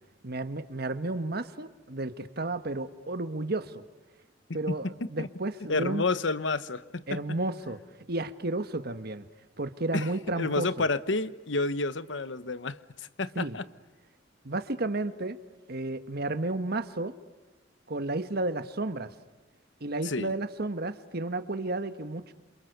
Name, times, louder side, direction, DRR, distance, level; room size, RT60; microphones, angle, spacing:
voice 1, 0.2-3.8 4.5-6.0 7.1-7.8 8.1-9.3 9.6-10.7 13.3-13.6 14.4-15.4 15.7-17.1 17.9-19.1 19.8-22.3, right 2 dB, 55° right, 10 dB, 1.5 m, -32 dB
voice 2, 5.7-7.2 9.9-13.6 20.0-20.3, left 3 dB, 75° left, 14 dB, 1.1 m, -30 dB
28.0 x 27.5 x 6.8 m, 1.1 s
head